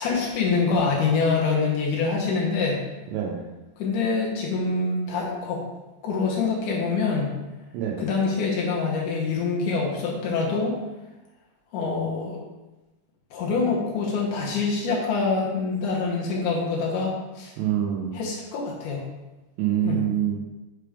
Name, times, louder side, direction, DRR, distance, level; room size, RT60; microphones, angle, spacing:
voice 1, 0.0-2.8 3.8-5.6 6.0-7.3 8.0-10.8 11.7-12.4 13.3-17.5 18.1-19.0 19.8-20.0, left 4 dB, 90° left, -3 dB, 1.8 m, -25 dB
voice 2, 3.1-3.4 7.7-8.0 17.6-18.2 19.6-20.4, right 10 dB, 85° right, -2 dB, 2.8 m, -25 dB
6.7 x 3.4 x 4.9 m, 1.1 s
omnidirectional pair, 5.1 m